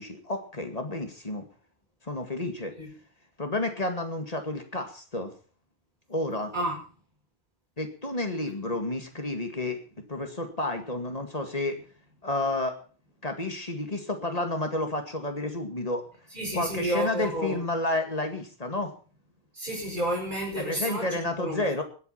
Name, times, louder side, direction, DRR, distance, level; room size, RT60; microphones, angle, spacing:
voice 1, 0.0-1.4 2.0-2.7 3.4-5.3 6.1-6.5 7.8-9.8 10.1-11.8 12.2-12.8 13.2-16.0 16.5-18.9 20.6-21.8, left 2 dB, 40° left, 5 dB, 2.2 m, -30 dB
voice 2, 6.5-6.8 16.3-17.6 19.5-21.8, right 1 dB, 50° right, -2 dB, 5.7 m, -31 dB
20.5 x 8.4 x 5.8 m, 0.39 s
omnidirectional pair, 1.0 m